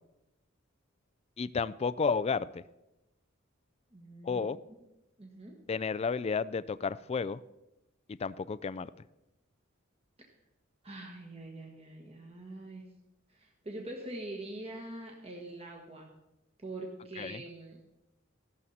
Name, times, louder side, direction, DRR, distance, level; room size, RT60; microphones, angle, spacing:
voice 1, 1.4-2.6 4.2-4.6 5.7-7.4 8.2-8.9 17.2-17.4, left 5 dB, 30° left, 17 dB, 0.3 m, -32 dB
voice 2, 3.9-4.5 5.2-5.6 10.8-12.8 13.3-16.1 16.6-17.8, right 2 dB, 30° right, 1 dB, 1.6 m, -44 dB
15.5 x 12.5 x 4.2 m, 0.95 s
head